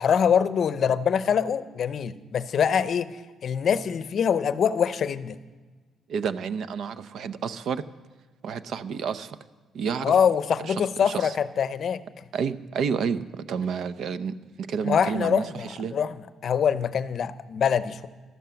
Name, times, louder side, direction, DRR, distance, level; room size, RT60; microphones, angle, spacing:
voice 1, 0.0-5.4 10.0-12.0 14.8-16.1 16.4-18.1, left 7 dB, 50° left, 14 dB, 0.7 m, -24 dB
voice 2, 6.1-7.8 8.4-9.4 9.7-10.1 10.6-11.3 12.3-16.0, right 6 dB, 65° right, 13 dB, 0.7 m, -30 dB
13.5 x 12.5 x 7.0 m, 1.3 s
cardioid pair, 130°, 0 cm